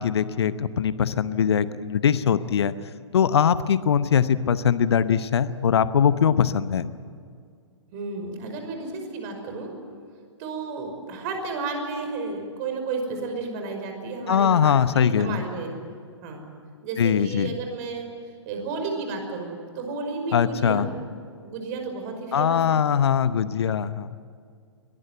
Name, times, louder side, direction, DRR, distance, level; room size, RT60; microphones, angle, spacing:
voice 1, 0.0-2.7 3.1-6.9 14.3-15.4 17.0-17.5 20.3-20.8 22.3-24.1, left 8 dB, 60° left, 14 dB, 0.9 m, -21 dB
voice 2, 7.9-9.7 10.4-15.7 16.2-16.4 16.8-20.9 21.4-22.8, right 3 dB, 35° right, 4 dB, 5.7 m, -32 dB
23.5 x 19.0 x 9.2 m, 2.2 s
figure-of-eight pair, 120°, 15 cm